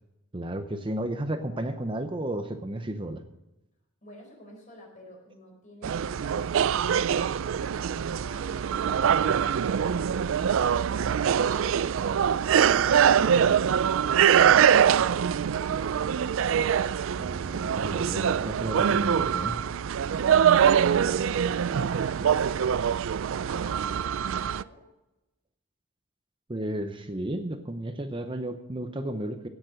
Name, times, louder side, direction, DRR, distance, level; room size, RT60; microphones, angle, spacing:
voice 1, 0.3-3.2 17.2-19.7 26.5-29.5, right 1 dB, 25° right, 7 dB, 0.7 m, -33 dB
voice 2, 4.0-14.4 15.1-16.3 20.6-24.9, left 1 dB, 40° left, 0 dB, 4.6 m, -51 dB
sound 1, 5.8-24.6, right 8 dB, 70° right, 0.4 m, -24 dB
17.5 x 7.1 x 6.3 m, 0.97 s
head